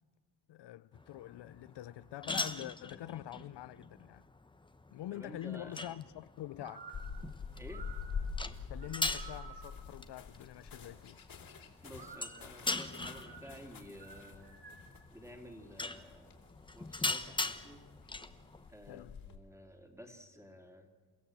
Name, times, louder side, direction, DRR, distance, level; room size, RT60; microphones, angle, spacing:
voice 1, 0.5-4.3 4.9-7.0 8.7-11.2 18.9-19.2, left 13 dB, 85° left, 0.6 m, -45 dB
sound 1, 0.9-18.7, left 2 dB, 10° left, 0.9 m, -42 dB
voice 2, 5.1-5.8 7.5-7.9 11.8-14.6 15.1-16.4 16.7-17.9 18.7-20.9, equal, 5° right, 2.7 m, -52 dB
sound 2, 6.6-9.9 11.9-15.0, right 5 dB, 70° right, 6.5 m, -53 dB
sound 3, 6.9-19.4, left 5 dB, 60° left, 3.1 m, -47 dB
29.0 x 16.0 x 7.8 m
cardioid pair, 115°, 40 cm